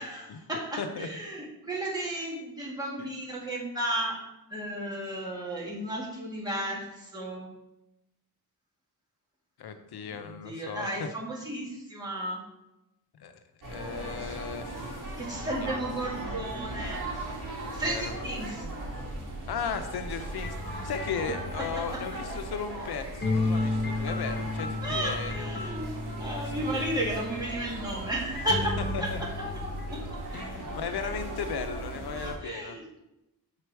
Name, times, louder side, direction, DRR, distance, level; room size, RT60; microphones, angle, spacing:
voice 1, 0.0-4.2 4.5-7.5 10.1-12.4 15.2-17.1 17.7-18.7 21.6-22.0 24.8-29.3 29.9-30.0 30.3-30.4 32.2-32.8, right 1 dB, 10° right, -5 dB, 2.0 m, -34 dB
voice 2, 0.8-1.1 9.6-11.1 13.1-13.3 13.6-15.0 15.4-15.7 17.8-18.2 19.5-25.4 26.7-26.9 28.9-29.2 30.3-32.8, left 6 dB, 85° left, 8 dB, 0.7 m, -36 dB
sound 1, 13.6-32.4, right 1 dB, 60° right, 2.4 m, -38 dB
sound 2, 20.4-22.6 23.2-27.5 28.3-30.1, left 3 dB, 30° left, 0.6 m, -33 dB
6.9 x 4.9 x 4.6 m, 0.90 s
wide cardioid pair, 175°, 37 cm